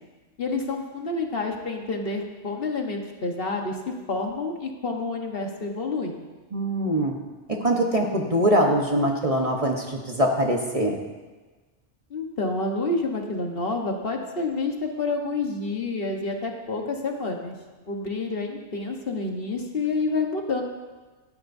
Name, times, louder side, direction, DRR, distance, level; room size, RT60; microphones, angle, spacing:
voice 1, 0.4-6.1 12.1-17.5 17.9-20.6, left 3 dB, 55° left, 2 dB, 1.4 m, -28 dB
voice 2, 6.5-7.1 7.6-11.0, right 1 dB, 30° right, 1 dB, 1.1 m, -23 dB
17.5 x 12.5 x 2.7 m, 1.3 s
omnidirectional pair, 1.2 m